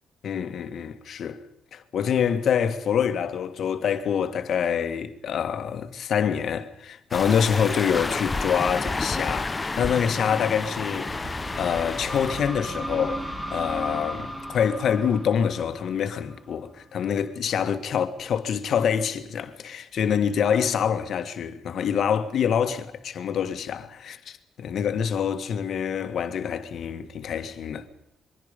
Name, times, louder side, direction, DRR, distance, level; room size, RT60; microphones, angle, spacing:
voice 1, 0.2-1.4 1.7-13.2 13.5-27.9, left 8 dB, 65° left, 1.7 m, -26 dB
sound 1, 7.1-12.4, left 3 dB, 25° left, 1.0 m, -30 dB
sound 2, 11.1-16.7, equal, 20° right, 7.1 m, -35 dB
27.0 x 22.0 x 5.3 m
cardioid pair, 90°, 0 cm